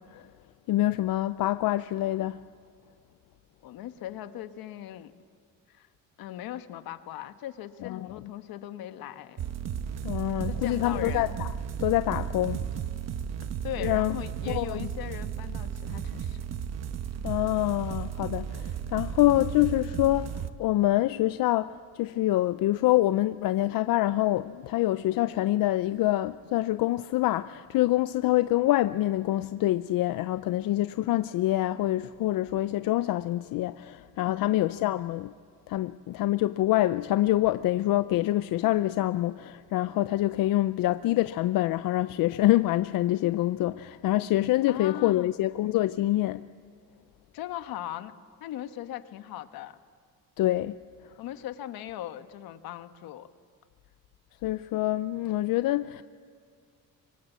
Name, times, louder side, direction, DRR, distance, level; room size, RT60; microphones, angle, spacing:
voice 1, 0.7-2.4 7.8-8.1 10.0-11.5 11.8-12.6 13.8-14.2 14.5-14.9 17.2-35.3 35.7-46.4 50.4-50.7 54.4-56.0, left 15 dB, 70° left, 0.6 m, -26 dB
voice 2, 3.6-5.1 5.7-5.9 6.2-9.5 10.5-11.4 12.2-12.3 13.6-16.4 34.3-34.5 44.7-45.3 47.3-48.1 48.4-49.8 51.2-53.3, left 12 dB, 90° left, 1.3 m, -39 dB
sound 1, 9.4-20.5, right 8 dB, 50° right, 1.1 m, -34 dB
27.0 x 24.5 x 8.2 m
cardioid pair, 150°, 35 cm